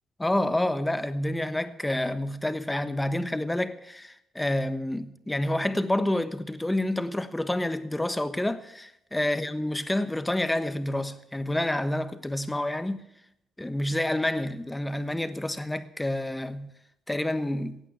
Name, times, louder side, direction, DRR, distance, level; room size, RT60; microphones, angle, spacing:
voice 1, 0.2-13.0 13.6-16.7 17.1-17.8, left 1 dB, 10° left, 1.1 m, -28 dB
16.0 x 9.0 x 8.9 m
cardioid pair, 90°, 0 cm